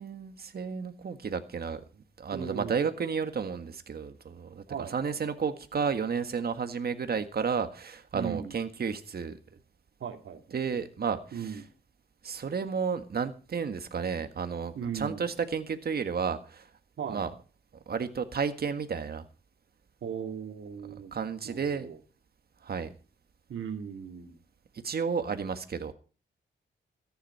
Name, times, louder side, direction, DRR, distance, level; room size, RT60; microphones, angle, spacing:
voice 1, 0.0-1.8 2.2-4.6 4.9-9.4 10.5-11.2 12.2-16.7 17.1-17.3 17.9-19.2 21.1-21.9 22.6-22.9 24.8-25.9, right 6 dB, 50° right, 1.6 m, -32 dB
voice 2, 2.3-2.8 4.7-5.0 8.1-8.5 10.0-10.6 11.3-11.6 14.7-15.3 17.0-17.3 20.0-21.1 21.4-22.0 23.5-24.4, right 7 dB, 80° right, 2.3 m, -37 dB
14.0 x 10.0 x 5.5 m
wide cardioid pair, 110°, 20 cm